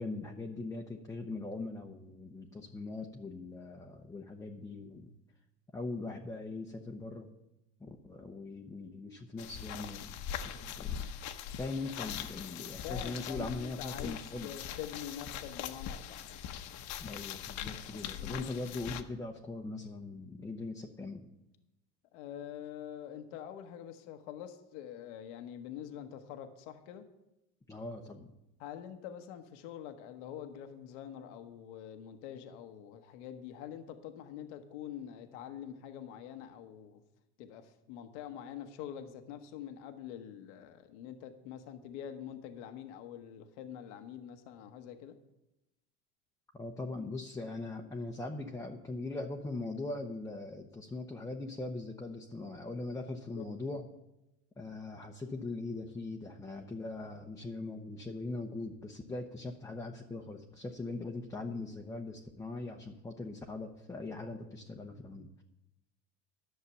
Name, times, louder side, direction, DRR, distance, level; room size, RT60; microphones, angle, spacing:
voice 1, 0.0-5.1 5.7-7.3 7.8-11.1 11.6-14.5 17.0-21.3 27.7-28.3 46.5-53.9 54.6-65.4, left 3 dB, 10° left, 1 dB, 0.8 m, -41 dB
sound 1, 9.4-19.0, left 9 dB, 55° left, 1.0 m, -41 dB
voice 2, 12.8-14.2 14.4-16.3 18.2-18.5 22.1-27.0 28.6-37.0 37.4-45.1 53.3-53.5, left 10 dB, 80° left, 7 dB, 1.1 m, -45 dB
11.5 x 6.6 x 6.9 m, 0.93 s
supercardioid pair, 115°, 35 cm